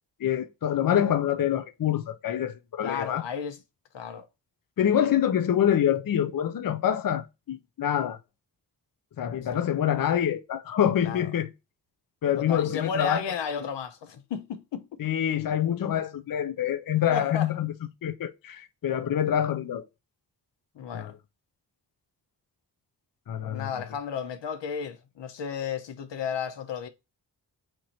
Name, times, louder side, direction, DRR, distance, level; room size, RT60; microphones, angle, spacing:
voice 1, 0.2-3.2 4.8-8.2 9.2-11.5 12.2-13.2 15.0-17.7 18.0-19.8 20.9-21.1 23.3-23.7, left 10 dB, 55° left, 0.6 m, -26 dB
voice 2, 2.8-3.6 3.9-4.3 9.3-9.6 11.0-11.3 12.4-15.0 17.1-17.5 20.7-21.1 23.4-26.9, left 6 dB, 85° left, 0.7 m, -33 dB
4.4 x 2.5 x 4.3 m
cardioid pair, 75°, 42 cm